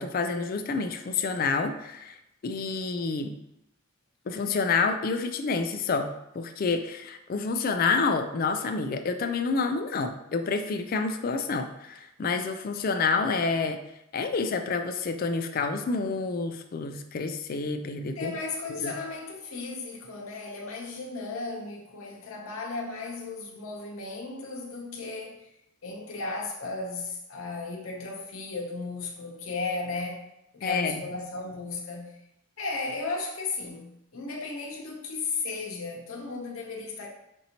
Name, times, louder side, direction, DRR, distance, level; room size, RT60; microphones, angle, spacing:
voice 1, 0.0-2.2 2.4-3.3 4.3-13.8 14.1-18.3 18.7-18.9 30.6-31.0, left 4 dB, 45° left, 7 dB, 0.3 m, -28 dB
voice 2, 18.2-25.5 25.8-30.2 30.5-32.1 32.6-37.1, left 3 dB, 90° left, -1 dB, 0.8 m, -35 dB
5.2 x 2.7 x 2.9 m, 0.84 s
head